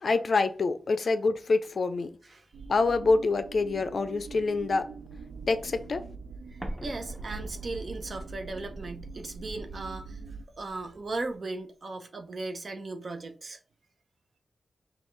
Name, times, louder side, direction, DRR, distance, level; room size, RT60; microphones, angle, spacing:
voice 1, 0.0-2.1 2.7-4.9 5.5-6.0, left 3 dB, 50° left, 0.4 m, -26 dB
sound 1, 2.5-10.4, right 4 dB, 90° right, 0.4 m, -43 dB
voice 2, 6.5-10.2 10.6-13.6, right 2 dB, 40° right, 0.7 m, -37 dB
Explosion, 6.6-11.4, right 1 dB, 5° right, 0.9 m, -44 dB
5.3 x 2.4 x 3.1 m
wide cardioid pair, 145°, 0 cm